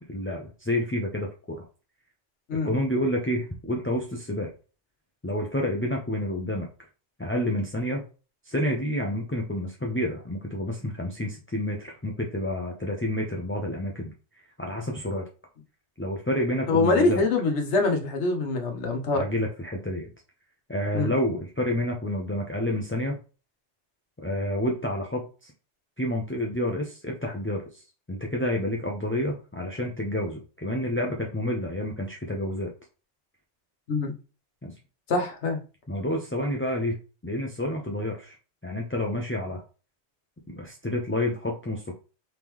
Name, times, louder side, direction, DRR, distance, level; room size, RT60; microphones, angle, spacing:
voice 1, 0.1-1.6 2.6-4.5 5.2-6.7 7.2-8.0 8.4-15.2 16.0-17.3 19.1-20.1 20.7-23.2 24.2-25.5 26.0-27.8 28.1-32.7 34.6-34.7 35.9-37.0 37.2-38.4 38.6-39.6 40.5-41.9, left 1 dB, 15° left, 0.4 m, -29 dB
voice 2, 16.7-19.2 20.9-21.1 33.9-34.1 35.1-35.6, left 3 dB, 70° left, 1.2 m, -24 dB
3.6 x 3.6 x 3.0 m
omnidirectional pair, 1.2 m